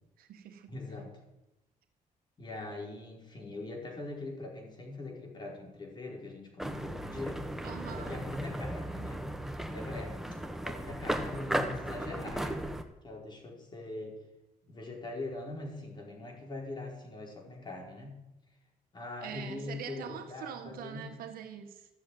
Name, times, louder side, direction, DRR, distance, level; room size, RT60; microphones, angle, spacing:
voice 1, 0.2-0.7 7.6-8.2 19.2-21.9, right 9 dB, 85° right, 6 dB, 1.6 m, -44 dB
voice 2, 0.7-1.1 2.4-10.2 10.6-12.6 13.0-14.2 14.6-18.2 18.9-21.1, left 2 dB, 30° left, 0 dB, 4.9 m, -42 dB
sound 1, 6.6-12.8, right 1 dB, ahead, 1.3 m, -36 dB
13.5 x 7.2 x 9.3 m, 0.89 s
cardioid pair, 110°, 15 cm